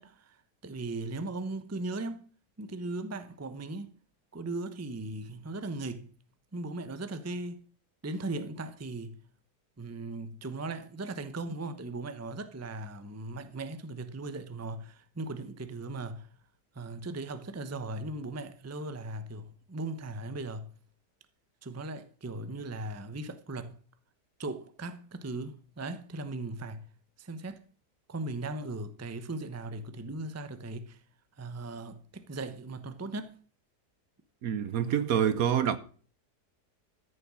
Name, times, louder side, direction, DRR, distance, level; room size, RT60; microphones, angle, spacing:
voice 1, 0.0-2.3 2.6-4.0 4.3-6.1 6.5-7.7 8.0-9.2 9.8-16.3 16.7-20.7 21.6-23.8 24.4-26.8 27.2-27.6 28.1-31.0 31.4-33.4, right 2 dB, 15° right, 0.6 m, -38 dB
voice 2, 34.4-35.8, right 9 dB, 65° right, 1.1 m, -26 dB
13.5 x 7.1 x 6.2 m
omnidirectional pair, 1.8 m